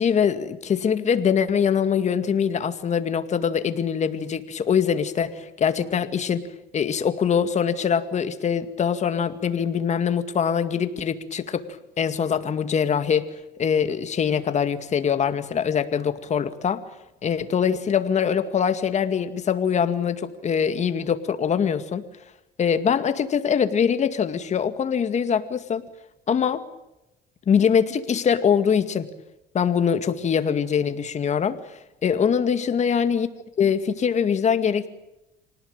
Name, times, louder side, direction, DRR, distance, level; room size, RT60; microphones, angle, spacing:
voice 1, 0.0-6.5 6.7-16.8 17.2-22.0 22.6-25.8 26.3-26.6 27.5-29.1 29.5-31.6 32.0-33.3 33.6-34.9, left 7 dB, 45° left, 10 dB, 2.1 m, -23 dB
26.5 x 19.0 x 9.1 m, 0.95 s
cardioid pair, 110°, 17 cm